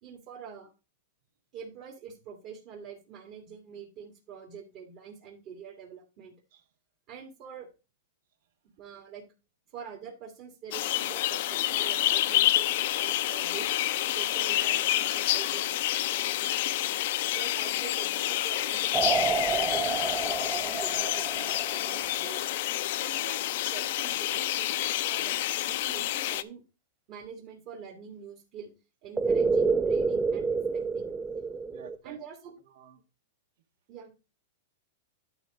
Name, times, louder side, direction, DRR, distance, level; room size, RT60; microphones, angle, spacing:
voice 1, 0.0-0.7 1.5-6.3 7.1-7.7 8.8-9.2 9.7-13.7 14.1-16.5 17.3-22.4 23.0-26.6 27.1-28.7 29.0-31.1 32.0-32.5 33.9-34.1, right 7 dB, 40° right, -2 dB, 2.1 m, -45 dB
sound 1, 10.7-26.4, left 14 dB, 55° left, 0.6 m, -28 dB
sound 2, 18.9-22.3 29.2-32.0, right 4 dB, 10° right, 0.6 m, -28 dB
voice 2, 31.7-32.2 32.7-33.0, right 11 dB, 65° right, 9 dB, 1.5 m, -50 dB
11.5 x 4.0 x 4.8 m, 0.30 s
supercardioid pair, 150°, 0 cm